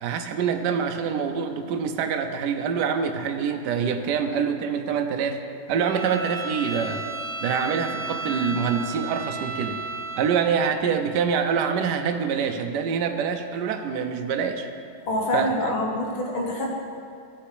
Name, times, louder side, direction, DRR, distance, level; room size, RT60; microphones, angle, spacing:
voice 1, 0.0-5.4 5.7-7.0 7.4-9.8 10.2-14.7 15.3-15.5, right 6 dB, 65° right, 6 dB, 1.1 m, -25 dB
Bowed string instrument, 5.8-10.6, right 3 dB, 35° left, 0.9 m, -33 dB
voice 2, 15.1-16.7, left 1 dB, 70° left, -1 dB, 2.1 m, -26 dB
14.0 x 5.8 x 4.9 m, 2.4 s
omnidirectional pair, 2.3 m